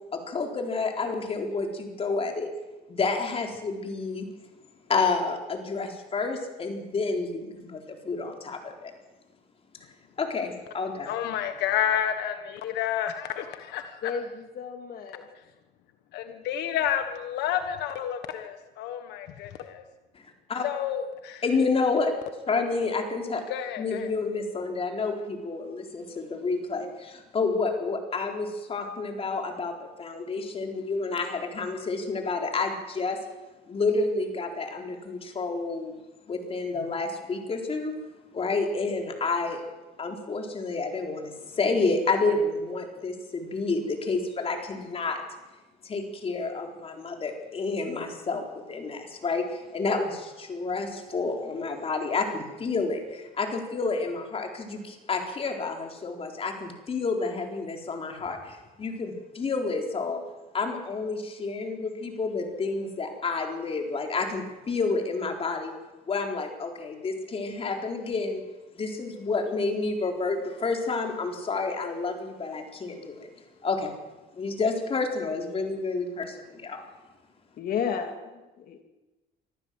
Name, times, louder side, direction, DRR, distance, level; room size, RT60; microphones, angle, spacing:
voice 1, 0.1-2.5 2.9-4.3 4.9-8.9 10.2-11.1 20.1-20.2 20.5-20.7 21.4-22.1 22.5-23.4 23.8-29.7 30.0-33.2 33.7-35.9 36.3-37.9 38.3-39.6 40.0-45.2 45.8-60.2 60.5-65.7 66.1-68.4 68.7-73.3 73.6-73.9 74.3-76.8, left 3 dB, 35° left, 3 dB, 4.1 m, -29 dB
voice 2, 11.0-14.2 15.3-15.4 16.1-19.8 20.6-21.4 23.5-24.1, left 10 dB, 85° left, 8 dB, 1.4 m, -30 dB
voice 3, 14.0-15.2 77.6-78.8, left 6 dB, 60° left, 5 dB, 2.4 m, -32 dB
25.0 x 15.0 x 7.7 m, 1.1 s
cardioid pair, 110°, 17 cm